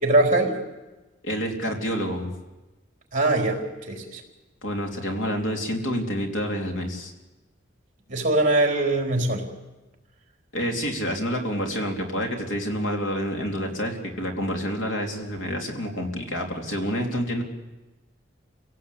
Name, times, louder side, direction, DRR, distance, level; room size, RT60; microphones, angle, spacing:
voice 1, 0.0-0.6 3.1-3.6 3.9-4.2 8.1-9.5, right 2 dB, 40° right, 2 dB, 4.1 m, -22 dB
voice 2, 1.2-2.3 4.6-7.1 10.5-17.4, equal, 75° left, 2 dB, 3.6 m, -28 dB
28.5 x 17.5 x 8.7 m, 1.1 s
head